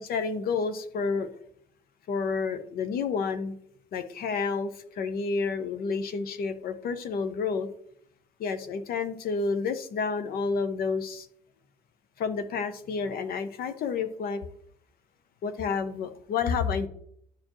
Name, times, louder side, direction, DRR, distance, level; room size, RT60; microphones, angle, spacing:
voice 1, 0.0-1.3 2.1-3.6 3.9-7.7 8.4-11.3 12.2-14.4 15.4-16.9, left 5 dB, 60° left, 10 dB, 0.8 m, -30 dB
12.0 x 4.4 x 3.0 m, 0.67 s
cardioid pair, 110°, 17 cm